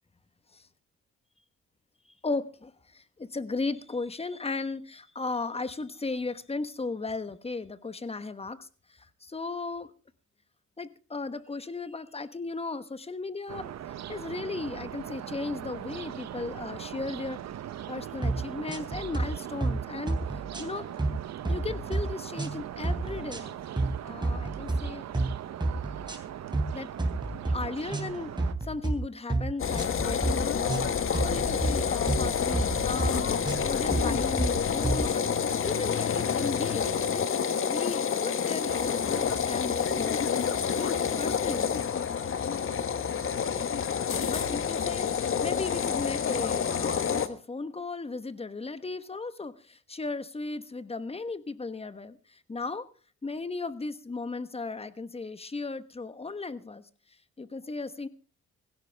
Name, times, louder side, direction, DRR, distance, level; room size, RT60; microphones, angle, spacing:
voice 1, 2.2-8.7 9.2-9.9 10.8-13.7 14.1-17.4 17.9-20.2 20.6-20.9 21.5-23.6 24.0-25.0 26.7-26.9 27.5-28.3 28.6-30.9 31.2-33.3 33.6-35.2 35.6-37.2 37.7-40.3 40.7-41.8 44.2-52.9 53.2-56.8 57.4-58.1, left 3 dB, 20° left, 13 dB, 1.2 m, -36 dB
sound 1, 13.5-28.5, right 10 dB, 60° right, 1.0 m, -40 dB
sound 2, 18.2-18.4 18.7-19.3 19.6-19.8 20.1-21.2 21.5-22.0 22.4-22.6 22.8-23.4 23.8-23.9 24.2-24.8 25.1-25.3 25.6-26.2 26.5-26.7 27.0-27.6 27.9-29.0 29.3-29.5 29.8-30.3 30.7-30.9 31.1-31.7 32.1-32.2 32.5-33.1 33.5-33.6 33.9-34.5 34.8-35.0, right 2 dB, 15° right, 3.3 m, -29 dB
sound 3, 29.6-47.3, left 7 dB, 45° left, 1.3 m, -28 dB
17.0 x 16.0 x 3.5 m, 0.36 s
cardioid pair, 90°, 30 cm